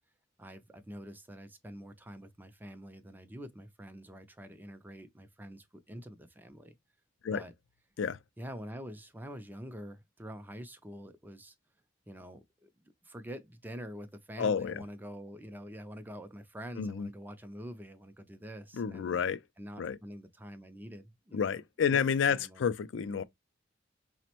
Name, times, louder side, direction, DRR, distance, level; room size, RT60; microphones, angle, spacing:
voice 1, 0.4-6.8 7.3-7.5 8.4-11.5 12.1-12.7 13.0-19.2 19.6-21.6 21.9-22.0 22.3-22.6, equal, 10° right, 0.4 m, -46 dB
voice 2, 14.4-14.8 16.8-17.1 18.7-19.4 19.8-20.0 21.3-23.2, left 6 dB, 70° left, 0.4 m, -30 dB
5.0 x 2.1 x 2.8 m
head